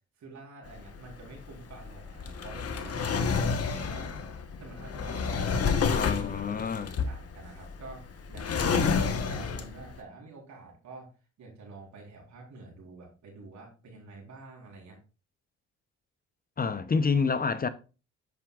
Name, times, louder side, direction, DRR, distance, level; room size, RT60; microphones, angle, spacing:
voice 1, 0.2-4.2 4.6-5.7 6.5-11.1 11.4-15.0, right 3 dB, 70° right, 4.0 m, -48 dB
Drawer open or close, 0.7-9.9, left 5 dB, 50° left, 1.3 m, -30 dB
voice 2, 5.9-6.9 16.6-17.7, left 5 dB, 30° left, 0.7 m, -28 dB
9.5 x 8.5 x 2.4 m
cardioid pair, 90°, 30 cm